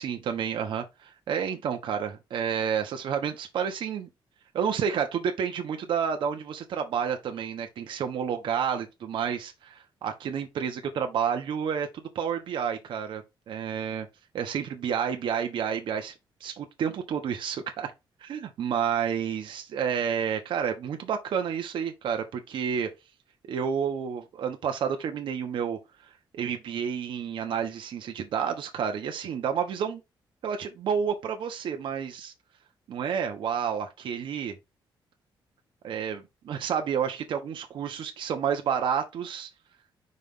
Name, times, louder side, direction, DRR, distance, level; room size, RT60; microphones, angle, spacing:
voice 1, 0.0-4.1 4.5-11.9 12.1-14.1 14.3-16.1 16.4-17.9 18.2-22.9 23.5-25.8 26.3-30.0 30.4-32.3 32.9-34.5 35.8-39.5, right 7 dB, 70° right, 1.2 m, -30 dB
5.5 x 3.2 x 5.6 m
cardioid pair, 120°, 9 cm